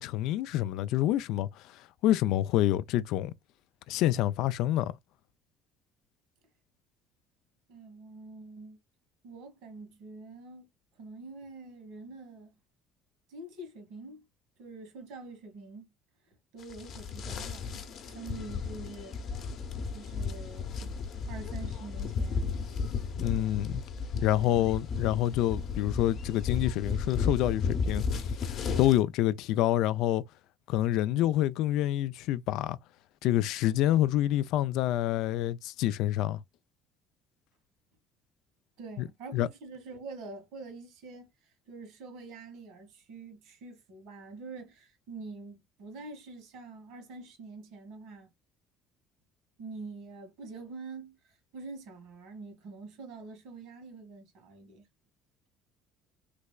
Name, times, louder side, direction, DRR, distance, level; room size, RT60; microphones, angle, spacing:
voice 1, 0.0-1.5 2.0-3.3 3.9-4.9 23.2-23.8 24.2-30.2 30.7-32.8 33.2-36.4 39.3-39.5, left 13 dB, 70° left, 0.3 m, -27 dB
voice 2, 7.7-8.8 9.2-10.7 11.0-12.5 13.3-14.2 14.6-15.9 16.5-19.2 19.9-21.0 21.2-22.6 24.4-24.7 38.8-41.3 41.7-48.3 49.6-54.9, right 3 dB, 75° right, 1.9 m, -45 dB
sound 1, 16.6-29.0, left 5 dB, 45° left, 0.7 m, -34 dB
3.3 x 3.1 x 2.2 m
cardioid pair, 150°, 0 cm